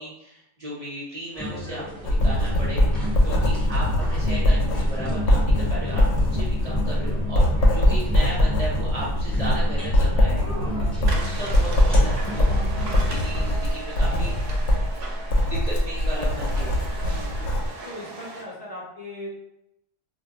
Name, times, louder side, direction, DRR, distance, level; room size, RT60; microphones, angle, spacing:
voice 1, 0.0-7.5 7.7-10.4 11.0-12.5 13.0-14.5 15.5-16.8, right 1 dB, 40° right, -7 dB, 0.7 m, -35 dB
sound 1, 1.3-13.6, left 2 dB, ahead, 0.6 m, -32 dB
Writing, 2.0-17.7, left 1 dB, 80° left, 0.9 m, -22 dB
voice 2, 3.2-3.7 16.9-17.3 17.8-19.3, left 1 dB, 40° left, -6 dB, 0.7 m, -39 dB
sound 2, 11.1-18.4, right 3 dB, 70° right, 0.7 m, -37 dB
2.2 x 2.1 x 3.7 m, 0.86 s
omnidirectional pair, 1.1 m